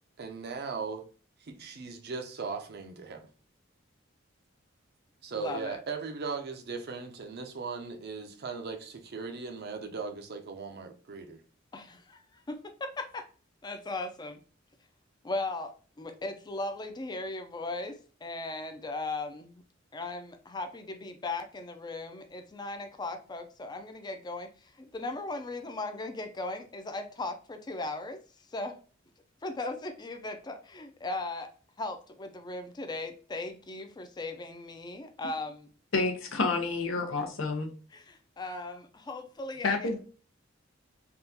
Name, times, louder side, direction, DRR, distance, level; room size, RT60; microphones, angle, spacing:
voice 1, 0.2-1.0 1.4-3.3 5.2-11.4, right 4 dB, 55° right, 0.5 m, -38 dB
voice 2, 5.4-5.8 11.7-12.2 12.5-13.3 13.6-14.4 15.2-19.6 19.9-28.2 28.5-28.8 29.4-31.5 31.8-35.7 37.9-40.0, left 2 dB, 20° left, 0.4 m, -37 dB
voice 3, 35.9-37.7 39.6-40.0, left 3 dB, 85° left, 0.7 m, -29 dB
3.6 x 2.3 x 2.7 m
head